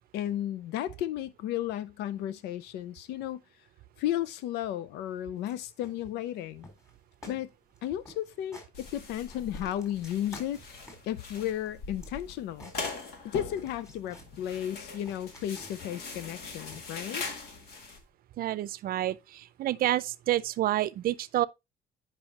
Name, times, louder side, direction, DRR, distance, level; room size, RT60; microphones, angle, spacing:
voice 1, 0.1-3.4 4.0-6.7 7.3-7.5 7.8-10.6 11.1-12.7 13.2-17.2, left 11 dB, 85° left, 0.5 m, -34 dB
sound 1, 5.4-5.6 5.8-6.4 6.6-6.9 7.2-7.4 7.7-7.8 8.0-8.7 9.1-11.2 11.6-13.3 13.6-14.3 14.7-16.0 16.7-17.0, left 1 dB, 20° left, 3.7 m, -51 dB
sound 2, 8.7-18.0, left 4 dB, 70° left, 1.9 m, -42 dB
voice 2, 18.4-21.5, right 14 dB, 60° right, 0.5 m, -29 dB
8.9 x 5.4 x 2.9 m
cardioid pair, 110°, 17 cm